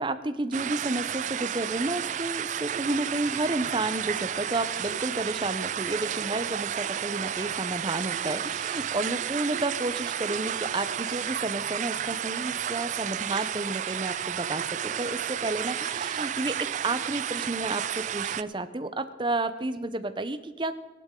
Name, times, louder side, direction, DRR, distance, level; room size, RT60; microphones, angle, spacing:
voice 1, 0.0-20.8, right 2 dB, 25° right, 11 dB, 0.7 m, -31 dB
sound 1, 0.5-18.4, right 9 dB, 40° right, 0.3 m, -32 dB
17.0 x 12.0 x 3.8 m, 1.1 s
head